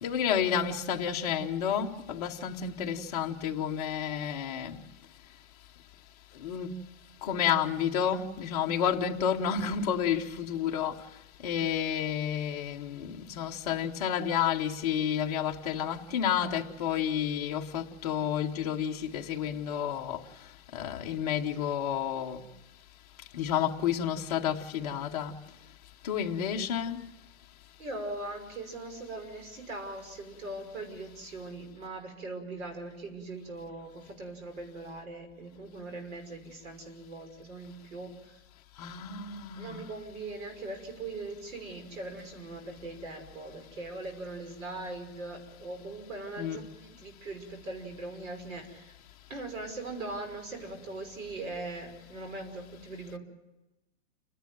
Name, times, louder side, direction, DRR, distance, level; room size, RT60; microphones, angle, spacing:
voice 1, 0.0-4.8 6.4-6.7 7.2-11.0 11.4-20.2 20.7-22.4 23.3-25.3 26.0-27.1 38.8-39.9 46.4-46.6, left 8 dB, 30° left, 1.0 m, -30 dB
voice 2, 27.8-38.4 39.6-49.0 49.3-53.2, right 2 dB, 75° right, 5.9 m, -40 dB
29.5 x 11.5 x 9.3 m
hypercardioid pair, 180°, 41 cm